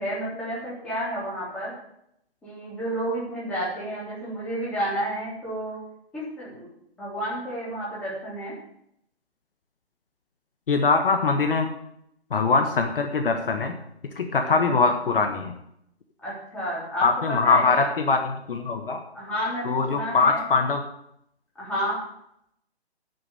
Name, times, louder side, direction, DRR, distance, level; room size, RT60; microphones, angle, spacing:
voice 1, 0.0-1.7 2.4-5.8 6.1-6.7 7.0-8.5 14.5-14.8 16.2-17.9 19.1-20.4 21.6-22.0, equal, 5° left, -9 dB, 3.7 m, -31 dB
voice 2, 10.7-11.7 12.3-13.7 14.1-15.5 17.0-19.0 19.6-20.8, left 4 dB, 55° left, 5 dB, 1.5 m, -22 dB
10.5 x 6.9 x 9.1 m, 0.75 s
hypercardioid pair, 170°, 32 cm